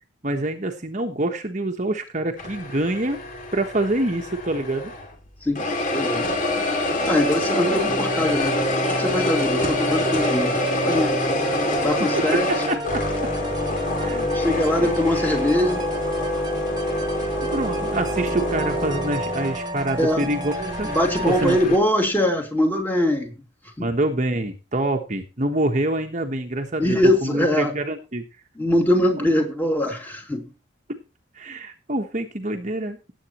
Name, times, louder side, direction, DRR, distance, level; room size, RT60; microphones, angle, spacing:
voice 1, 0.2-3.2 3.5-4.9 12.7-13.0 13.9-14.3 14.8-14.9 17.5-20.9 21.2-21.6 23.8-27.0 27.2-28.2 30.9-31.0 31.3-33.1, right 1 dB, 35° right, 1.3 m, -26 dB
sound 1, 2.4-5.2 5.6-21.8, left 1 dB, 40° left, 2.7 m, -26 dB
voice 2, 5.4-6.3 7.0-11.2 11.8-12.7 14.3-15.8 20.0-20.3 20.8-23.3 23.6-23.9 26.8-27.8 28.5-30.5, left 1 dB, 10° left, 2.6 m, -22 dB
sound 2, 7.9-21.6, right 2 dB, 20° right, 1.4 m, -32 dB
17.0 x 8.4 x 3.1 m
head